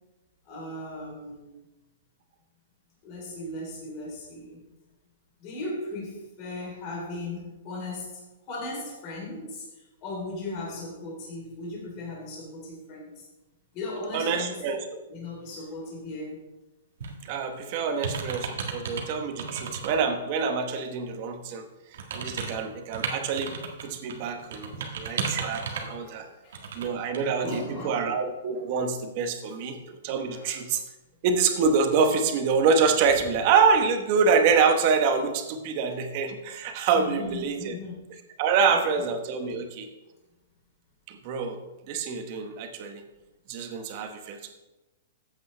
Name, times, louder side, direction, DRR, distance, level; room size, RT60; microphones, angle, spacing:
voice 1, 0.5-1.6 3.0-4.6 5.4-8.2 8.5-9.6 10.0-13.1 13.7-14.5 15.1-16.4 24.7-24.8 25.4-26.6 27.4-28.0 29.4-29.6 30.3-30.5 36.9-37.9 38.6-38.8, left 2 dB, 25° left, -3 dB, 3.3 m, -37 dB
voice 2, 14.1-14.9 17.3-21.7 22.1-23.6 23.8-26.3 26.7-30.8 31.2-37.8 38.4-39.9 41.1-41.6 41.9-43.0 43.5-44.5, right 5 dB, 30° right, 6 dB, 1.0 m, -26 dB
sound 1, 17.0-17.3 17.8-19.0 19.4-19.9 20.4-20.5 21.9-23.8 24.1-25.9 26.5-26.9 27.1-27.2, right 5 dB, 65° right, 1.6 m, -33 dB
14.0 x 8.6 x 3.3 m, 1.1 s
hypercardioid pair, 175°, 0 cm